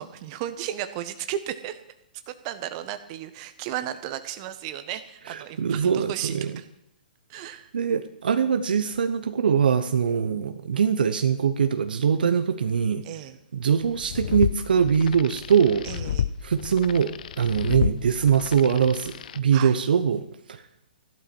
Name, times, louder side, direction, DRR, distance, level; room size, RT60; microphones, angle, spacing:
voice 1, 0.0-1.8 2.3-6.7 7.3-7.7 13.0-13.4 15.8-16.3 19.5-19.8, right 11 dB, 40° right, 9 dB, 1.5 m, -34 dB
voice 2, 5.3-6.6 7.4-13.0 13.5-15.9 16.4-17.1 17.4-20.2 20.5-20.6, right 7 dB, 70° right, 9 dB, 1.0 m, -22 dB
sound 1, 13.9-19.4, left 9 dB, 60° left, 0.7 m, -31 dB
15.0 x 12.0 x 6.2 m, 0.80 s
hypercardioid pair, 125°, 5 cm